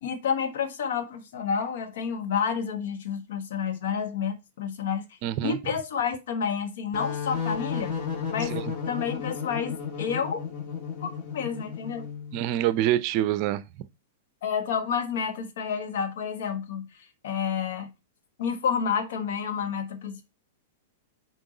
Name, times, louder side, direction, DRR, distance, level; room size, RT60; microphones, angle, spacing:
voice 1, 0.0-7.9 8.3-8.5 8.9-10.4 11.0-12.1 14.4-17.9 18.4-20.2, left 7 dB, 65° left, 1.3 m, -30 dB
voice 2, 5.2-5.6 8.5-8.6 12.3-13.6, right 13 dB, 45° right, 0.5 m, -25 dB
sound 1, 6.9-12.4, left 6 dB, 45° left, 1.9 m, -33 dB
6.2 x 4.4 x 3.9 m
hypercardioid pair, 110°, 0 cm